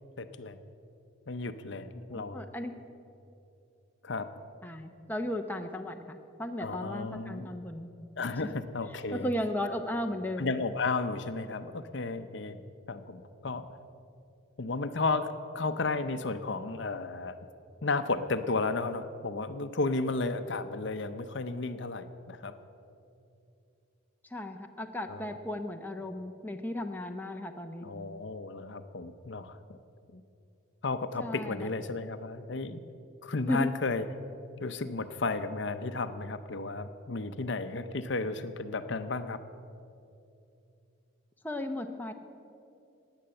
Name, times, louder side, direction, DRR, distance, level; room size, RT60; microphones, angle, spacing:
voice 1, 0.2-0.6 1.3-2.4 4.0-4.3 6.6-7.5 8.2-9.3 10.4-12.6 12.9-13.7 14.6-15.3 15.5-17.3 17.8-22.5 25.1-25.3 27.8-29.8 30.1-30.2 30.8-32.8 33.2-34.0 34.6-39.4, left 3 dB, 60° left, 10 dB, 0.7 m, -33 dB
voice 2, 2.1-2.7 4.6-7.9 9.1-10.5 24.3-27.9 31.2-31.7 33.4-33.7 41.4-42.1, left 1 dB, 10° left, 4 dB, 0.7 m, -35 dB
15.5 x 9.9 x 7.8 m, 2.7 s
head